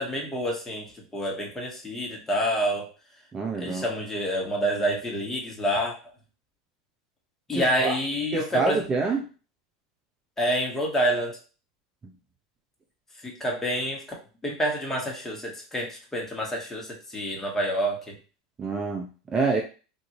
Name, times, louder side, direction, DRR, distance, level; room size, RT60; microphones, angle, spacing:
voice 1, 0.0-2.9 3.5-6.0 7.5-8.8 10.4-11.4 13.2-18.2, equal, 10° left, -1 dB, 1.3 m, -28 dB
voice 2, 3.3-3.9 7.5-8.0 8.3-9.2 18.6-19.6, right 4 dB, 20° right, 2 dB, 0.5 m, -27 dB
3.7 x 2.6 x 3.0 m, 0.35 s
supercardioid pair, 115°, 3 cm